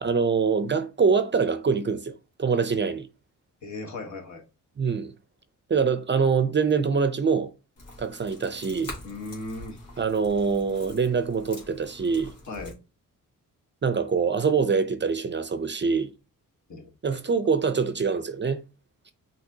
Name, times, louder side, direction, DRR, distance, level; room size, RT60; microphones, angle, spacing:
voice 1, 0.0-2.1 2.4-3.1 4.8-5.1 5.7-7.5 8.0-8.9 10.0-12.3 13.8-16.1 17.0-18.6, right 5 dB, 35° right, 0.5 m, -24 dB
voice 2, 3.6-4.4 9.0-9.8 12.5-12.8 16.7-17.2, left 2 dB, 60° left, 1.3 m, -37 dB
sound 1, 7.8-12.7, left 2 dB, 75° left, 1.8 m, -45 dB
5.8 x 2.9 x 2.7 m
cardioid pair, 85°, 33 cm